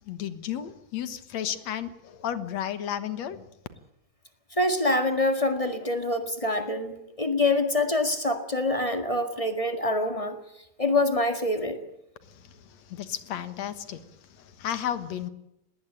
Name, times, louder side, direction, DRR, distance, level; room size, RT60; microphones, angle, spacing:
voice 1, 0.1-3.5 12.2-15.3, left 10 dB, 65° left, 2.4 m, -33 dB
voice 2, 4.6-10.4 10.8-11.8, left 2 dB, 20° left, 1.1 m, -25 dB
20.0 x 18.0 x 8.8 m
omnidirectional pair, 3.5 m